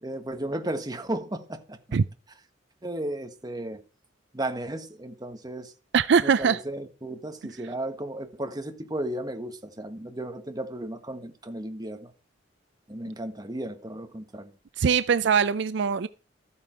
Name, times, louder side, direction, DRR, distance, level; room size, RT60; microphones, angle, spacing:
voice 1, 0.0-1.8 2.8-3.8 4.3-5.7 6.2-12.1 12.9-14.5, right 1 dB, 20° right, 1.5 m, -34 dB
voice 2, 5.9-6.6 14.8-16.1, right 6 dB, 65° right, 0.5 m, -22 dB
13.5 x 8.7 x 4.5 m
head